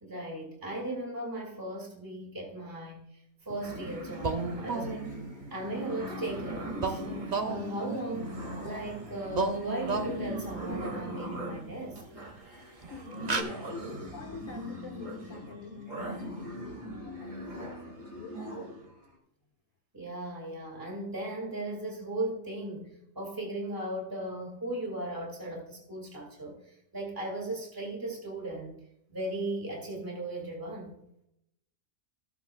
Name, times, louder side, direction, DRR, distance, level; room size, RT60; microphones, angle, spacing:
voice 1, 0.0-3.0 3.5-5.1 5.5-7.0 7.4-8.3 8.6-12.0 19.9-22.9 23.2-28.8 29.1-31.0, right 1 dB, 15° right, 2.2 m, -37 dB
sound 1, 3.6-19.0, right 1 dB, 75° right, 2.8 m, -40 dB
sound 2, 4.2-5.3 6.8-8.9 9.3-10.8 12.3-12.4 12.8-13.0 13.3-13.4, right 4 dB, 40° right, 0.8 m, -34 dB
voice 2, 12.7-18.5, left 4 dB, 80° left, 2.3 m, -45 dB
14.5 x 8.0 x 2.3 m
omnidirectional pair, 1.4 m